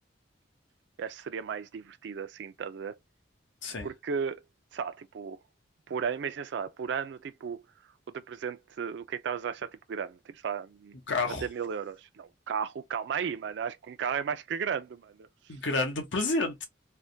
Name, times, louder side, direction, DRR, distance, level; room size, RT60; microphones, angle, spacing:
voice 1, 1.0-2.9 3.8-4.4 4.7-5.4 5.9-7.6 8.1-10.9 11.4-15.3, right 6 dB, 65° right, 0.4 m, -34 dB
voice 2, 11.1-11.5 15.5-16.7, left 3 dB, 85° left, 0.9 m, -29 dB
3.3 x 2.1 x 2.6 m
head